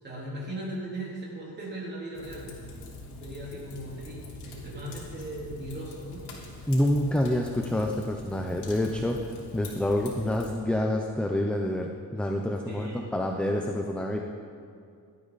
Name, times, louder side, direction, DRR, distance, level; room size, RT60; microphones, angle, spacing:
voice 1, 0.0-2.5 3.2-6.3 12.6-13.0, right 1 dB, 25° right, -5 dB, 3.8 m, -38 dB
Fire, 2.1-10.5, left 2 dB, 75° left, 3.3 m, -44 dB
voice 2, 6.7-14.2, left 1 dB, 5° left, 2 dB, 0.6 m, -27 dB
17.5 x 12.0 x 4.1 m, 2.3 s
cardioid pair, 145°, 40 cm